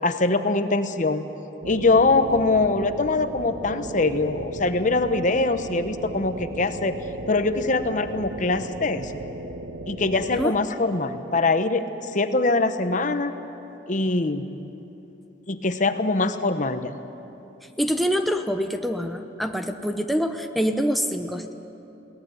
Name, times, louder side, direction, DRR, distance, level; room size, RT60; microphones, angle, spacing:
voice 1, 0.0-1.3 1.6-7.0 7.3-9.2 9.9-13.3 13.9-14.5 15.5-16.9, left 3 dB, 45° left, 9 dB, 0.9 m, -23 dB
sound 1, 1.6-10.5, right 2 dB, 70° right, 1.0 m, -36 dB
voice 2, 17.8-21.5, equal, ahead, 5 dB, 0.8 m, -25 dB
22.0 x 18.0 x 9.6 m, 3.0 s
head